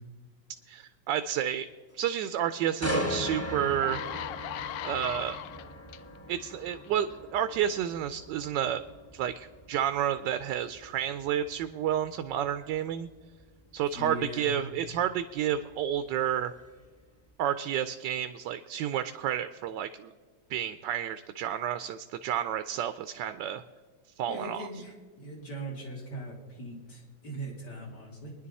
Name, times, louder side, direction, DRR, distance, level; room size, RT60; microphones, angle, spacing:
voice 1, 0.7-1.7 1.9-4.0 4.8-5.4 6.3-8.8 9.1-13.1 13.7-16.5 17.4-20.1 20.5-23.6 24.2-24.7, right 10 dB, 85° right, 10 dB, 1.3 m, -30 dB
sound 1, 2.8-16.7 17.1-17.3, equal, 10° left, 0.7 m, -39 dB
sound 2, 3.1-3.2 3.6-6.0 6.7-6.9, left 12 dB, 90° left, 1.3 m, -38 dB
voice 2, 13.9-14.6 24.3-28.3, right 1 dB, 70° left, -3 dB, 3.8 m, -40 dB
23.0 x 10.0 x 4.1 m, 1.4 s
omnidirectional pair, 1.9 m